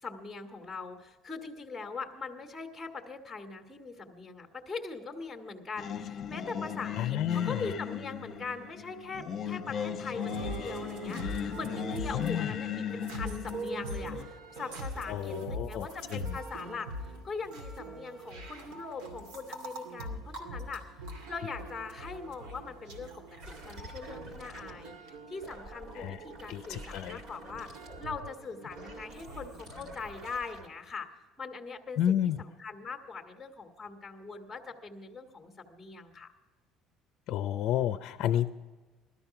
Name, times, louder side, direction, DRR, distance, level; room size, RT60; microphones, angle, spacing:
voice 1, 0.0-16.9 17.2-20.8 21.3-23.1 23.5-25.0 25.3-31.1 31.4-36.3, left 4 dB, ahead, 2 dB, 1.6 m, -41 dB
Singing, 5.8-14.3, left 8 dB, 35° left, 1.1 m, -37 dB
voice 2, 7.0-7.6 12.1-12.5 15.1-16.3 25.9-26.2 26.5-27.2 32.0-32.4 37.3-38.5, left 11 dB, 55° left, 9 dB, 0.5 m, -30 dB
sound 1, 10.2-29.6, right 1 dB, 90° right, 2.4 m, -43 dB
sound 2, 23.4-25.0 25.3-30.7, right 1 dB, 50° right, 2.4 m, -48 dB
17.0 x 13.0 x 5.8 m, 1.3 s
cardioid pair, 160°, 0 cm